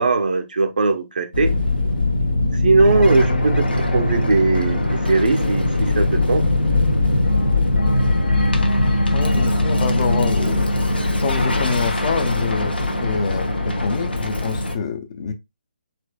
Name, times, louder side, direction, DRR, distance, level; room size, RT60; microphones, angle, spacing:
voice 1, 0.0-1.5 2.6-6.4, right 3 dB, 60° right, 0.8 m, -19 dB
sound 1, 1.3-14.8, left 2 dB, 80° left, 1.1 m, -20 dB
voice 2, 9.1-10.7 11.2-15.3, left 5 dB, 35° left, 0.6 m, -26 dB
4.3 x 4.0 x 2.2 m
figure-of-eight pair, 140°, 5 cm